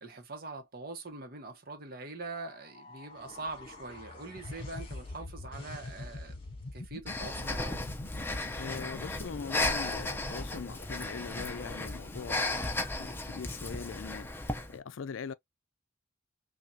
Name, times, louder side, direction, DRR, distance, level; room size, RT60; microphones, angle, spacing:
voice 1, 0.0-6.4 6.7-7.8, right 3 dB, 50° right, 1.0 m, -43 dB
sound 1, 2.2-6.8, left 2 dB, 25° left, 2.0 m, -52 dB
sound 2, 4.4-13.2, left 2 dB, 55° left, 0.9 m, -46 dB
Breathing, 7.1-14.7, left 2 dB, 10° left, 0.6 m, -35 dB
voice 2, 8.6-14.3 14.7-15.3, left 6 dB, 80° left, 0.4 m, -41 dB
5.8 x 2.4 x 2.7 m
head